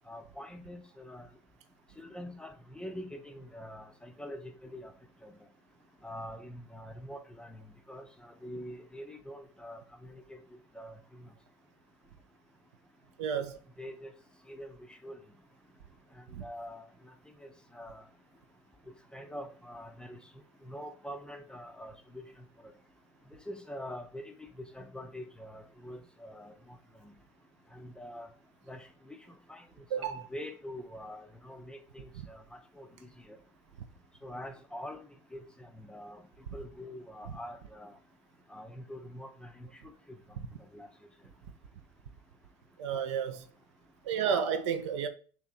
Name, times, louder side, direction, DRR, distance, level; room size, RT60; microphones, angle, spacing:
voice 1, 0.1-1.3 2.0-4.9 5.2-5.3 6.0-7.6 7.9-10.4 10.7-11.3 13.8-14.1 14.5-14.8 15.0-15.2 16.2-16.8 17.4-18.0 19.1-20.2 20.6-22.2 23.3-26.8 27.0-27.1 27.7-28.3 28.7-29.2 29.5-29.6 30.0-33.4 34.2-35.0 35.3-36.2 36.5-38.0 38.5-39.7 40.1-40.2 40.7-40.9, equal, 5° left, 0.5 m, -45 dB
voice 2, 13.2-13.6 16.3-16.4 29.9-30.3 42.8-43.5 44.1-45.1, right 7 dB, 60° right, 0.4 m, -31 dB
3.0 x 2.8 x 3.7 m
figure-of-eight pair, 65°, 16 cm